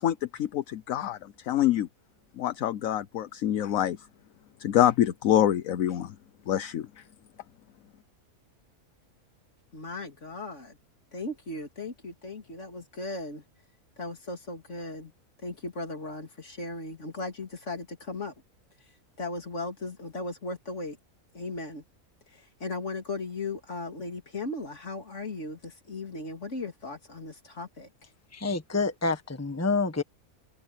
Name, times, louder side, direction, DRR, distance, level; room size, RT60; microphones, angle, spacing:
voice 1, 0.0-1.9 2.4-4.0 4.6-6.1 6.5-6.9, left 11 dB, 70° left, 1.2 m, -26 dB
voice 2, 9.7-10.8 11.1-13.4 14.0-15.1 15.4-18.3 19.2-21.0 21.3-21.8 22.3-27.9, left 2 dB, 55° left, 3.4 m, -37 dB
voice 3, 28.3-30.0, left 3 dB, 10° left, 1.4 m, -28 dB
omnidirectional pair, 1.5 m